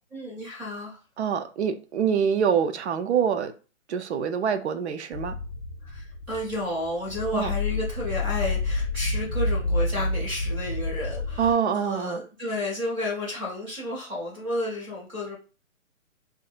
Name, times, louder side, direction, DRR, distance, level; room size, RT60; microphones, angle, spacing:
voice 1, 0.1-1.0 5.8-15.3, left 1 dB, 10° right, 0.5 m, -32 dB
voice 2, 1.2-3.5 3.9-5.3 7.3-7.5 11.4-12.2, right 7 dB, 55° right, 0.5 m, -25 dB
sound 1, 5.1-11.5, left 2 dB, 55° left, 0.6 m, -29 dB
2.6 x 2.1 x 2.4 m
figure-of-eight pair, 140°, 40 cm